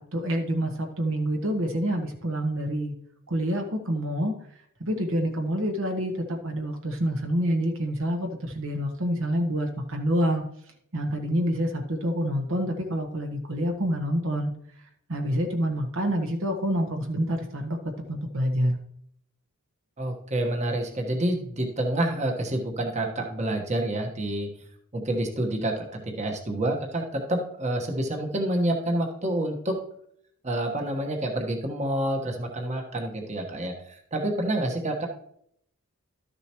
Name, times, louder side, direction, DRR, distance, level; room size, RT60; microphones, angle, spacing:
voice 1, 0.0-2.9 3.3-4.3 4.8-10.4 10.9-14.5 15.1-18.8, equal, 65° right, 4 dB, 1.2 m, -27 dB
voice 2, 20.0-24.5 24.9-29.7 30.4-33.7 34.1-35.1, right 1 dB, 30° right, 2 dB, 1.3 m, -28 dB
12.5 x 6.7 x 3.0 m, 0.70 s
head